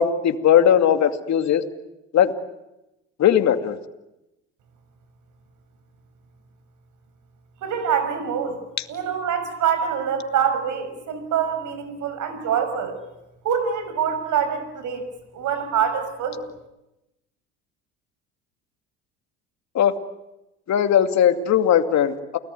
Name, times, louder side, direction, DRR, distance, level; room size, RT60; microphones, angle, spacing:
voice 1, 0.0-1.6 2.1-2.3 3.2-3.8 19.7-20.0 20.7-22.4, left 9 dB, 50° left, 7 dB, 2.4 m, -18 dB
voice 2, 7.6-8.6 8.9-13.0 13.4-15.0 15.3-16.4, right 7 dB, 60° right, 10 dB, 6.2 m, -25 dB
29.0 x 19.0 x 9.6 m, 0.96 s
supercardioid pair, 75°, 34 cm